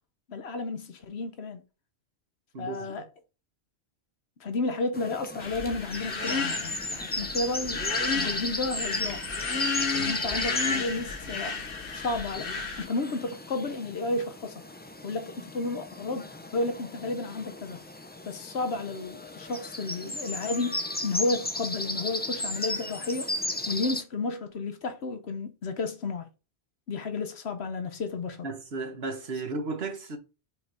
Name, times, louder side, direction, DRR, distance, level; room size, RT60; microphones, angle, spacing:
voice 1, 0.3-1.6 2.6-3.0 4.4-7.8 8.1-9.3 9.9-11.6 11.9-12.5 12.8-14.6 15.0-17.8 18.2-23.3 23.7-26.3 26.9-28.5, left 3 dB, 75° left, 1.1 m, -32 dB
voice 2, 2.5-3.1 28.4-30.2, right 3 dB, 70° right, 1.5 m, -34 dB
sound 1, 4.9-24.0, left 1 dB, 10° left, 0.5 m, -36 dB
sound 2, 5.4-12.8, left 4 dB, 60° left, 1.4 m, -32 dB
5.2 x 3.9 x 4.7 m
omnidirectional pair, 1.1 m